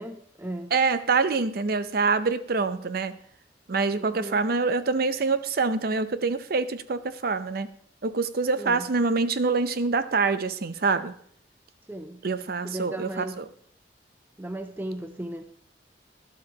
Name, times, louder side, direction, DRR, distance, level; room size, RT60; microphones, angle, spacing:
voice 1, 0.0-0.7 4.0-4.4 8.6-8.9 11.9-12.2 12.6-13.4 14.4-15.4, right 1 dB, 10° right, 7 dB, 0.5 m, -36 dB
voice 2, 0.7-3.2 3.7-7.7 8.0-11.1 12.2-13.5, right 4 dB, 55° right, 13 dB, 0.6 m, -25 dB
12.5 x 11.5 x 2.9 m, 0.62 s
head